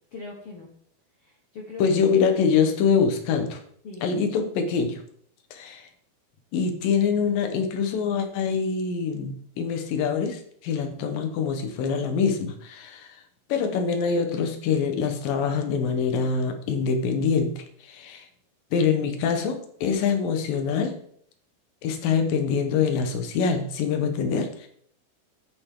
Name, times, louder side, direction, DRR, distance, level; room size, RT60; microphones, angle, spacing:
voice 1, 0.1-0.7 1.2-2.0 3.8-4.2, left 2 dB, 85° left, -1 dB, 1.2 m, -41 dB
voice 2, 1.8-3.6 4.0-5.0 5.5-5.9 6.5-13.2 13.5-18.3 18.7-21.0 21.8-24.7, left 6 dB, 65° left, 6 dB, 2.6 m, -25 dB
11.0 x 8.6 x 3.8 m, 0.64 s
omnidirectional pair, 5.0 m